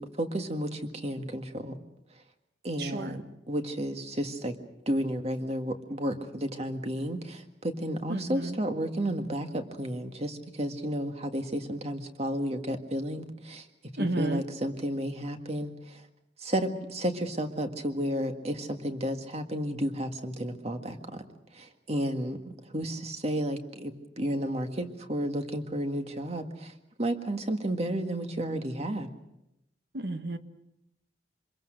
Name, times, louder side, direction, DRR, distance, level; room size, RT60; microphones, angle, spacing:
voice 1, 0.0-1.8 2.6-4.6 4.9-13.6 14.0-16.0 16.4-21.2 21.5-26.7 27.0-29.1, equal, 35° right, 6 dB, 1.8 m, -32 dB
voice 2, 2.8-3.2 8.1-8.6 14.0-14.4 29.9-30.4, right 2 dB, 60° right, 8 dB, 1.5 m, -32 dB
26.0 x 21.5 x 6.5 m, 0.87 s
head